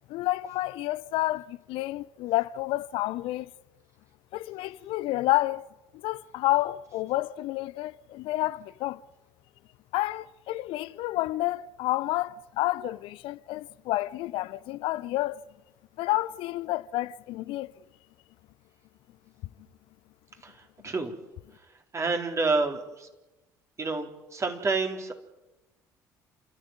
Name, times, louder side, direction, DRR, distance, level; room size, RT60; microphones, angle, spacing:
voice 1, 0.1-3.5 4.3-5.6 5.9-9.0 9.9-15.4 16.0-17.7, left 17 dB, 55° left, 0.7 m, -29 dB
voice 2, 20.4-21.1 21.5-21.7 21.9-23.1 23.8-25.2, right 3 dB, 30° right, 4.1 m, -29 dB
29.0 x 14.5 x 9.2 m
figure-of-eight pair, 55°, 10 cm